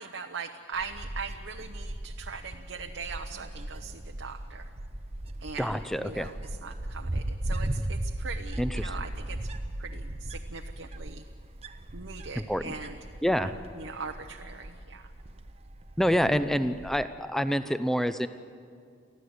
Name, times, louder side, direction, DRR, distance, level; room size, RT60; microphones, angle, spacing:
voice 1, 0.0-4.6 5.4-6.4 6.6-9.4 9.8-11.2 11.9-13.0 13.4-13.5 13.8-15.0, right 5 dB, 80° right, 4 dB, 0.9 m, -40 dB
Wind, 0.7-17.0, right 1 dB, 30° right, 0.8 m, -37 dB
voice 2, 5.6-6.3 8.6-9.0 12.3-12.7 13.2-13.5 16.0-18.3, equal, ahead, 11 dB, 0.6 m, -27 dB
24.0 x 15.0 x 8.1 m, 2.3 s
head